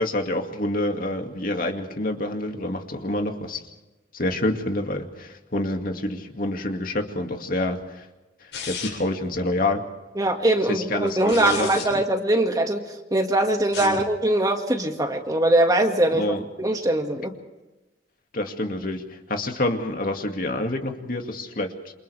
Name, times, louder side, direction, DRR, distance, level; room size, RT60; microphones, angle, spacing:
voice 1, 0.0-3.7 4.1-8.1 8.4-9.8 10.7-12.0 13.8-14.0 16.1-16.4 18.3-21.7, left 1 dB, 50° left, 4 dB, 2.3 m, -27 dB
sound 1, 8.5-9.2 11.1-11.9 13.6-14.0, left 7 dB, 75° left, 7.7 m, -34 dB
voice 2, 10.2-17.3, right 1 dB, 20° right, 3 dB, 2.0 m, -22 dB
28.0 x 28.0 x 3.5 m, 1.1 s
head